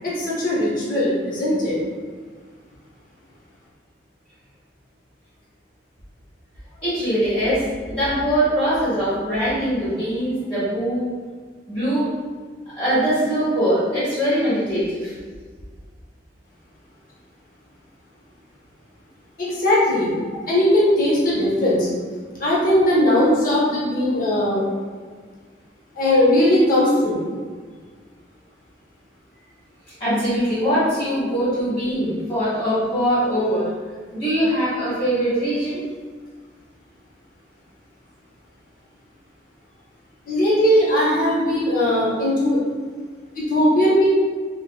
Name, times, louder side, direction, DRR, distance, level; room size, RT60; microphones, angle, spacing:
voice 1, 0.0-1.8 19.4-20.1 20.5-21.9 22.4-24.6 25.9-27.2 40.3-42.6 43.4-44.1, left 1 dB, 50° left, -6 dB, 0.8 m, -19 dB
voice 2, 6.8-11.1 11.7-12.1 12.8-15.1 30.0-33.7 34.1-35.8, equal, 30° left, -12 dB, 1.3 m, -22 dB
3.5 x 3.1 x 2.3 m, 1.5 s
head